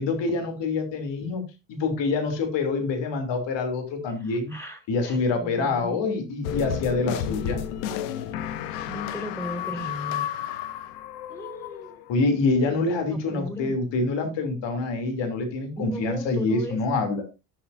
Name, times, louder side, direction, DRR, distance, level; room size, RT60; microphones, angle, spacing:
voice 1, 0.0-1.4 1.7-4.5 4.9-7.6 12.1-17.2, left 3 dB, 70° left, 6 dB, 3.0 m, -26 dB
voice 2, 4.1-6.0 8.9-10.3 11.3-12.0 13.1-13.7 15.8-16.8, left 1 dB, 5° left, 4 dB, 4.5 m, -36 dB
sound 1, 6.4-12.1, left 10 dB, 85° left, 1.0 m, -32 dB
16.0 x 7.1 x 2.6 m, 0.25 s
hypercardioid pair, 55°, 46 cm